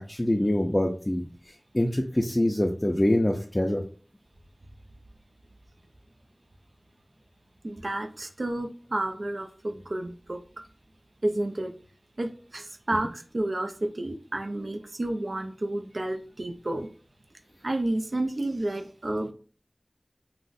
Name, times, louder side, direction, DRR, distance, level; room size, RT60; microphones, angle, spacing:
voice 1, 0.0-3.8, left 1 dB, 25° left, 1 dB, 0.4 m, -25 dB
voice 2, 7.6-10.4 11.2-11.7 12.2-16.9 17.6-19.3, right 1 dB, 70° right, 5 dB, 0.4 m, -31 dB
2.5 x 2.1 x 3.9 m, 0.38 s
wide cardioid pair, 45°, 0 cm